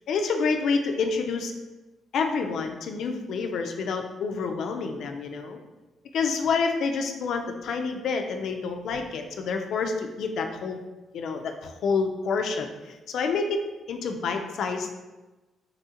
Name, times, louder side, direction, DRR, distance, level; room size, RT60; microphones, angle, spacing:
voice 1, 0.1-1.5 2.1-5.6 6.1-10.8 11.1-13.6 13.9-14.9, left 4 dB, 70° left, 5 dB, 0.3 m, -28 dB
2.9 x 2.4 x 2.7 m, 1.1 s
cardioid pair, 90°, 0 cm